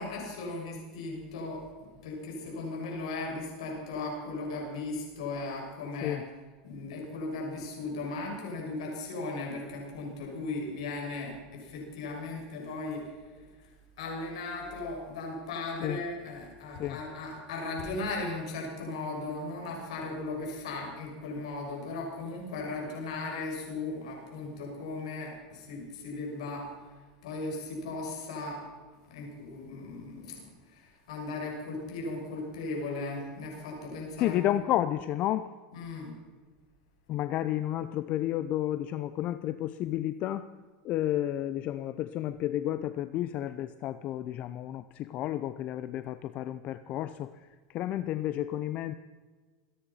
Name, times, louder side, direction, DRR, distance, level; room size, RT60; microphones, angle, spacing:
voice 1, 0.0-1.6 2.0-6.2 6.6-13.7 14.0-26.9 27.2-28.6 29.1-30.4 30.7-34.6 35.7-36.1, left 3 dB, 85° left, 0 dB, 6.9 m, -37 dB
voice 2, 34.2-35.5 37.1-40.5 40.8-48.9, left 13 dB, 45° left, 13 dB, 0.6 m, -31 dB
25.0 x 10.0 x 5.7 m, 1.4 s
supercardioid pair, 125°, 3 cm